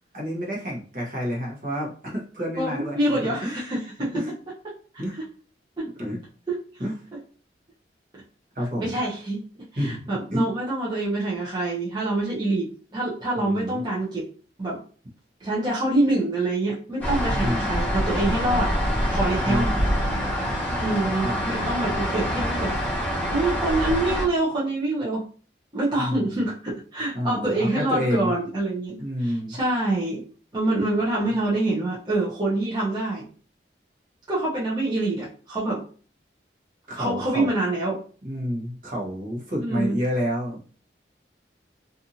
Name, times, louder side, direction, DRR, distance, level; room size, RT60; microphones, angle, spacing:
voice 1, 0.1-3.5 4.1-4.3 5.0-5.2 6.0-6.2 6.8-7.0 8.5-9.0 9.8-10.5 13.4-13.8 17.3-17.7 19.4-19.8 21.2-21.4 26.0-26.4 27.1-28.3 29.0-29.6 31.1-31.3 36.9-37.5 38.2-40.7, equal, 50° right, -3 dB, 1.0 m, -29 dB
voice 2, 2.6-4.2 5.8-5.9 6.5-6.6 8.8-9.4 9.7-14.3 14.6-14.8 15.4-18.7 19.1-19.7 20.8-22.7 23.3-25.3 25.7-30.2 30.5-33.3 34.3-35.8 36.9-38.0 39.6-40.0, right 2 dB, 25° right, -7 dB, 0.7 m, -26 dB
sound 1, 17.0-24.2, equal, 10° left, 0.8 m, -25 dB
2.6 x 2.5 x 2.7 m, 0.41 s
head